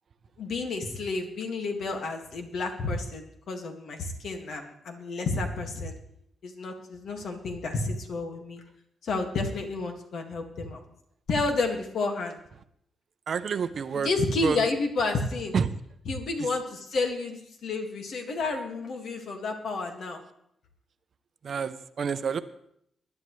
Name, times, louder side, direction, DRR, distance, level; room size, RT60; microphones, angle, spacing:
voice 1, 0.4-6.0 6.4-8.6 9.0-10.8 11.3-12.4 14.0-15.5 16.1-20.2, left 3 dB, 65° left, 4 dB, 1.9 m, -30 dB
voice 2, 13.3-14.1 14.4-14.6 15.5-15.8 21.4-22.4, right 6 dB, 50° right, 12 dB, 0.6 m, -28 dB
20.0 x 10.5 x 3.2 m, 0.71 s
wide cardioid pair, 150°, 0 cm